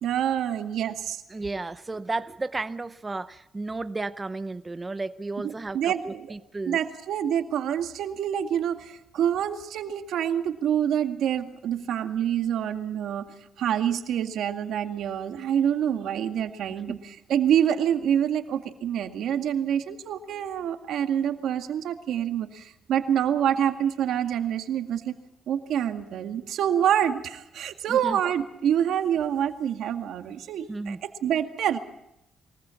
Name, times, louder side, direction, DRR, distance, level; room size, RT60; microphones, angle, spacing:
voice 1, 0.0-1.2 5.4-6.3 6.7-13.3 13.6-17.0 17.3-25.1 25.5-31.8, right 9 dB, 75° right, 6 dB, 2.0 m, -26 dB
voice 2, 1.3-6.8 27.9-28.2 30.7-31.0, right 3 dB, 20° right, 12 dB, 0.7 m, -33 dB
23.5 x 19.5 x 7.1 m, 0.84 s
cardioid pair, 90°, 0 cm